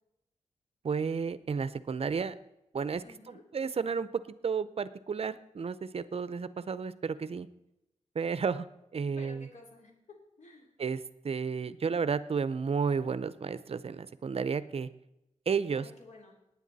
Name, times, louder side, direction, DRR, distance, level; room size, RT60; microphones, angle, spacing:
voice 1, 0.8-2.3 2.7-4.1 4.4-7.5 8.1-8.7 8.9-9.5 10.8-14.9 15.5-15.9, right 5 dB, 50° right, 15 dB, 0.6 m, -32 dB
voice 2, 3.0-3.4 9.0-10.7 15.7-16.4, left 2 dB, 70° left, 1 dB, 3.3 m, -53 dB
19.0 x 9.4 x 4.1 m, 0.86 s
wide cardioid pair, 100°, 13 cm